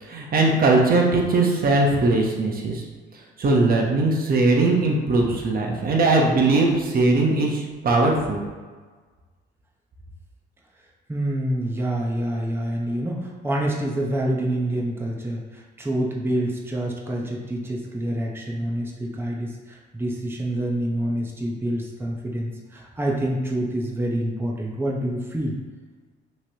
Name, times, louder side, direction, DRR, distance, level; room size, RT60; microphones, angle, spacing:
voice 1, 0.0-2.8 3.4-8.4, right 2 dB, 45° right, -1 dB, 0.9 m, -20 dB
voice 2, 11.1-25.6, right 1 dB, 10° right, -2 dB, 0.8 m, -27 dB
5.7 x 3.2 x 2.8 m, 1.4 s
cardioid pair, 90°, 20 cm